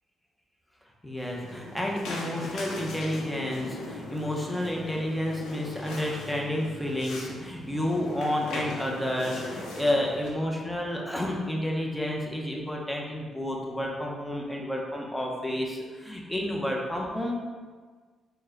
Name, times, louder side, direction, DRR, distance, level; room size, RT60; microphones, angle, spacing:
voice 1, 1.0-17.4, left 1 dB, 5° left, -2 dB, 0.8 m, -30 dB
sound 1, 1.2-10.3, left 2 dB, 75° left, 0.7 m, -40 dB
4.2 x 2.2 x 3.7 m, 1.5 s
supercardioid pair, 60°, 0 cm